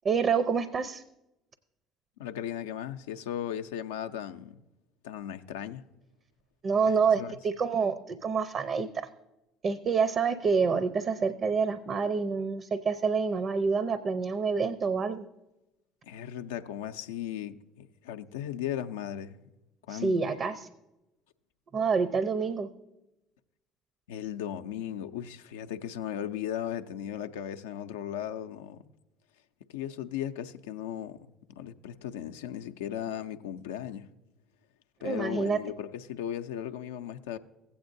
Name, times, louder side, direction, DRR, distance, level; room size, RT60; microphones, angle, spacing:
voice 1, 0.0-1.0 6.6-9.1 9.6-15.3 19.9-20.7 21.7-22.7 35.0-35.6, right 5 dB, 45° right, 0.6 m, -27 dB
voice 2, 2.2-4.6 5.0-5.8 6.8-7.4 16.0-19.4 19.9-20.3 24.1-28.8 29.7-31.2 31.6-34.1 35.0-37.4, left 10 dB, 80° left, 0.5 m, -36 dB
16.0 x 8.5 x 2.6 m
hypercardioid pair, 60°, 0 cm